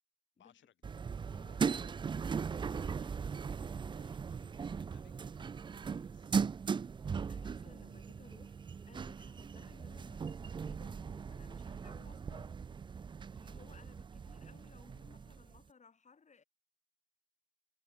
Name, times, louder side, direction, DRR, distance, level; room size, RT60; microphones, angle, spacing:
voice 1, 0.4-0.9 1.5-1.6 2.1-5.2 5.7-6.4 12.6-12.8, left 11 dB, 70° left, 6.4 m, -69 dB
sound 1, 0.8-15.6, right 6 dB, 25° right, 0.4 m, -39 dB
voice 2, 1.3-1.9 7.3-12.5 13.3-16.4, left 5 dB, 35° left, 3.9 m, -61 dB
cardioid pair, 90°, 20 cm